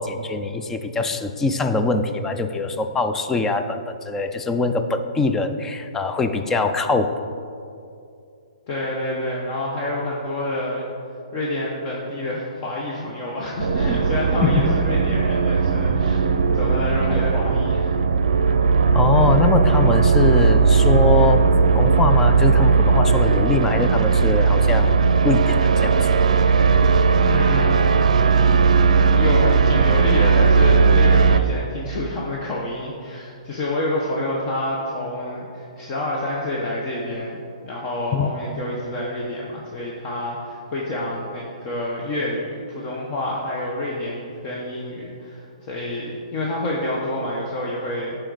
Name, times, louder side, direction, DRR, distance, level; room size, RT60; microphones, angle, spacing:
voice 1, 0.0-7.1 14.4-14.6 18.9-24.9 25.2-26.0 38.1-38.3, left 4 dB, 10° left, 7 dB, 0.4 m, -22 dB
voice 2, 8.7-10.8 11.3-17.9 27.2-28.0 29.1-48.2, left 1 dB, 30° left, -4 dB, 1.0 m, -28 dB
sound 1, 13.6-31.4, right 5 dB, 80° right, 0.5 m, -17 dB
11.5 x 4.5 x 4.0 m, 2.5 s
hypercardioid pair, 150°, 4 cm